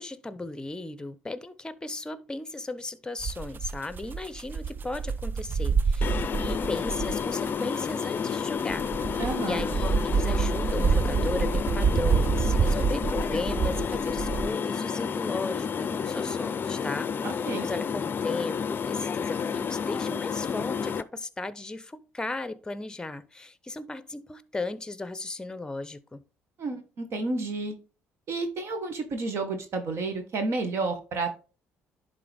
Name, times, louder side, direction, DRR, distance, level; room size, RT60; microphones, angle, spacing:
voice 1, 0.0-8.9 9.4-17.1 17.4-26.2, left 2 dB, 15° left, 0.8 m, -36 dB
sound 1, 3.2-7.5 7.9-8.0 8.5-14.5, right 5 dB, 40° right, 0.4 m, -27 dB
sound 2, 6.0-21.0, left 6 dB, 40° left, 0.5 m, -30 dB
voice 2, 9.2-9.6 17.2-17.7 26.6-27.7 28.3-31.4, right 3 dB, 60° right, 1.5 m, -31 dB
11.0 x 3.9 x 3.5 m
supercardioid pair, 65°, 5 cm